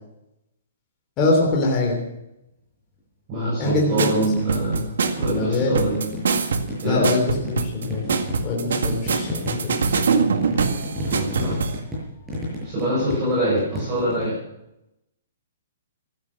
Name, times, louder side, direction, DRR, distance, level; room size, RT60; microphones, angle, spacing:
voice 1, 1.2-2.0 3.6-4.1 5.3-5.8 6.8-8.0 8.4-9.8, left 2 dB, 20° left, -2 dB, 3.4 m, -23 dB
voice 2, 3.3-4.9 5.2-6.1 6.8-7.1 11.1-11.6 12.6-14.4, right 1 dB, 25° right, -7 dB, 7.3 m, -24 dB
sound 1, 3.9-4.8 5.1-6.4 6.7-14.3, left 1 dB, 5° right, 6.6 m, -32 dB
sound 2, 4.0-11.8, right 5 dB, 75° right, 2.0 m, -23 dB
15.5 x 12.0 x 6.4 m, 0.86 s
hypercardioid pair, 170°, 0 cm